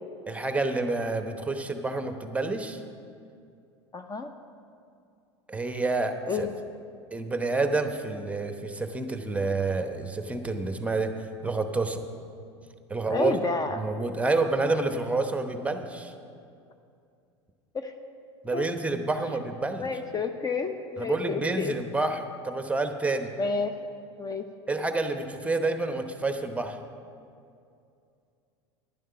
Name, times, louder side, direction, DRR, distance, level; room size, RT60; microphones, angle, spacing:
voice 1, 0.3-2.8 5.5-6.5 7.1-11.1 11.4-12.0 12.9-13.3 13.8-16.1 18.4-19.9 21.0-23.3 24.7-26.8, right 3 dB, 10° right, 7 dB, 0.9 m, -28 dB
voice 2, 3.9-4.3 6.3-6.5 13.1-13.8 17.8-17.9 18.5-18.6 19.8-21.7 23.4-23.7 24.2-24.4, left 4 dB, 25° left, 7 dB, 0.7 m, -30 dB
11.0 x 10.5 x 5.7 m, 2.4 s
hypercardioid pair, 85°, 15 cm